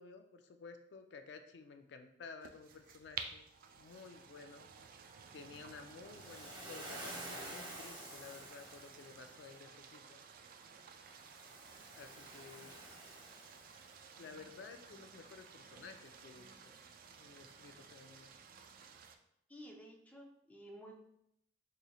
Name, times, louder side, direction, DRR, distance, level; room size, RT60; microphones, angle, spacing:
voice 1, 0.0-3.5 3.8-4.7 5.3-10.2 12.0-12.8 14.2-16.7 17.0-18.3, left 4 dB, 70° left, 7 dB, 0.4 m, -54 dB
sound 1, 2.4-19.2, right 6 dB, 55° right, 0.3 m, -54 dB
Waves surf, 6.0-9.2 11.0-14.1, right 1 dB, 25° right, 0.8 m, -50 dB
voice 2, 19.5-21.2, equal, 10° left, 0 dB, 0.5 m, -53 dB
3.8 x 3.0 x 2.3 m, 0.74 s
head